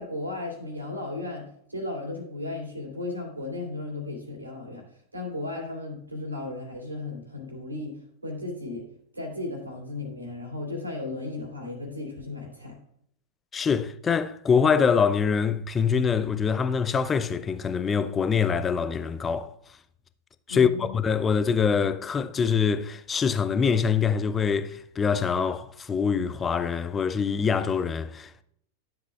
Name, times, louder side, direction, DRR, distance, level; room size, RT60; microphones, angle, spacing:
voice 1, 0.0-1.4 1.7-4.8 5.1-8.9 9.1-12.7 20.5-20.9, left 2 dB, 80° right, 2.6 m, -35 dB
voice 2, 13.5-19.5 20.5-28.4, left 6 dB, 20° left, 0.5 m, -24 dB
12.0 x 7.6 x 2.4 m
figure-of-eight pair, 90°, 0 cm